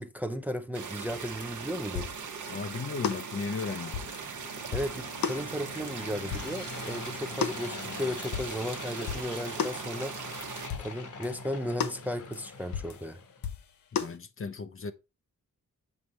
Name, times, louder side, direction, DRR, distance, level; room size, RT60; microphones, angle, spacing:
voice 1, 0.0-2.1 4.7-10.2 10.8-13.2, equal, 5° right, 0.6 m, -35 dB
sound 1, 0.7-10.7, right 6 dB, 60° right, 1.1 m, -40 dB
sound 2, 1.4-1.6 2.0-2.7 3.0-4.4 4.7-6.0 6.3-8.7 9.1-9.3 9.6-9.9 10.1-10.3 10.7-11.4 11.8-13.1 13.4-14.2, left 7 dB, 85° left, 0.8 m, -36 dB
sound 3, 1.4-13.4, left 3 dB, 60° left, 1.5 m, -44 dB
voice 2, 2.5-4.0 13.9-14.9, left 4 dB, 40° left, 0.7 m, -35 dB
5.8 x 5.5 x 3.2 m
cardioid pair, 60°, 34 cm